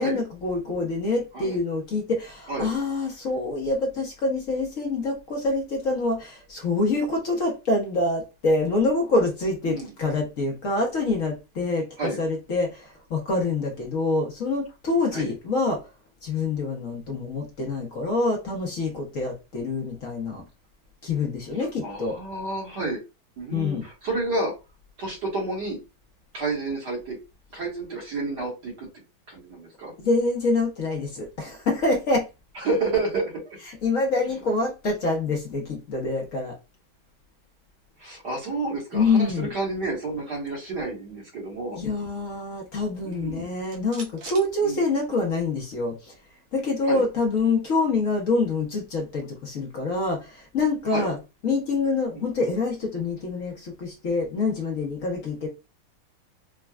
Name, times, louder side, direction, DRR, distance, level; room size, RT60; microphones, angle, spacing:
voice 1, 0.0-15.9 16.2-20.4 21.0-22.2 23.5-23.9 30.0-32.3 33.7-36.5 38.9-39.5 41.7-46.1 46.5-51.2 51.4-55.5, left 3 dB, 55° left, 0.9 m, -26 dB
voice 2, 21.6-23.0 23.4-24.5 25.0-25.8 26.3-27.2 27.5-28.9 29.3-29.9 32.6-33.6 38.0-41.8 43.0-43.5 44.6-44.8 46.9-47.0 50.9-51.1 52.1-52.3, right 3 dB, 60° right, 2.0 m, -30 dB
sound 1, 42.9-45.4 45.7-45.8 46.1-48.0, right 3 dB, 75° right, 1.8 m, -47 dB
5.0 x 2.2 x 2.3 m
omnidirectional pair, 2.2 m